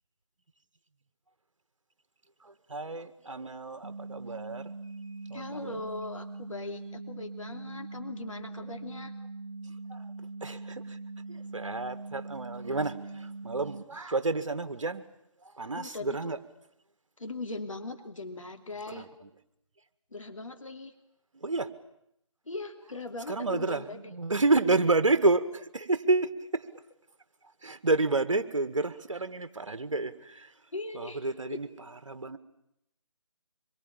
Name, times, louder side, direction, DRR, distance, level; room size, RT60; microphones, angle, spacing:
voice 1, 2.4-4.7 5.3-5.9 9.9-10.1 10.4-11.0 11.3-15.0 15.5-16.4 18.9-19.3 21.3-21.7 23.3-26.7 27.6-30.5 30.9-31.7 32.1-32.4, right 3 dB, 65° right, 1.9 m, -30 dB
sound 1, 3.8-13.8, right 3 dB, 80° right, 1.2 m, -42 dB
voice 2, 5.3-9.1 15.7-16.3 17.2-19.1 20.1-20.9 22.5-24.1 30.7-31.2, left 2 dB, 70° left, 2.9 m, -40 dB
25.5 x 23.0 x 8.8 m
figure-of-eight pair, 150°, 17 cm